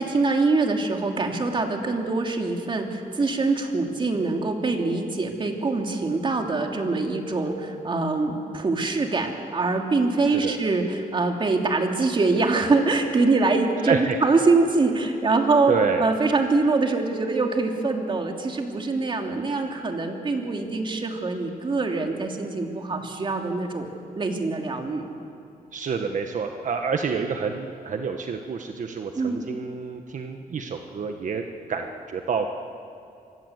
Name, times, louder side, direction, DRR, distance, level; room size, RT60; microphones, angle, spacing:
voice 1, 0.0-15.7 16.0-25.1 29.2-29.4, right 3 dB, 30° right, 3 dB, 3.0 m, -24 dB
voice 2, 13.8-14.2 15.7-16.1 25.7-31.4 31.7-32.5, right 5 dB, 55° right, 4 dB, 1.4 m, -28 dB
27.5 x 24.5 x 8.2 m, 2.5 s
wide cardioid pair, 135°, 16 cm